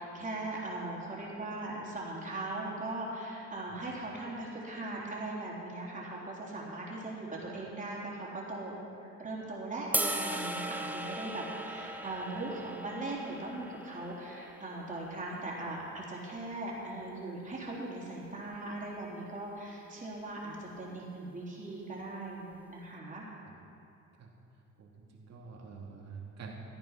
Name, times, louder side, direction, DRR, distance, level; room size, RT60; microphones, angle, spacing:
voice 1, 0.0-8.7 9.0-23.3, right 2 dB, 25° right, -5 dB, 3.6 m, -39 dB
sound 1, 9.9-16.2, right 1 dB, 5° right, 0.8 m, -38 dB
voice 2, 24.8-26.5, right 5 dB, 60° right, -3 dB, 2.7 m, -47 dB
15.0 x 9.0 x 5.8 m, 2.7 s
cardioid pair, 90°, 30 cm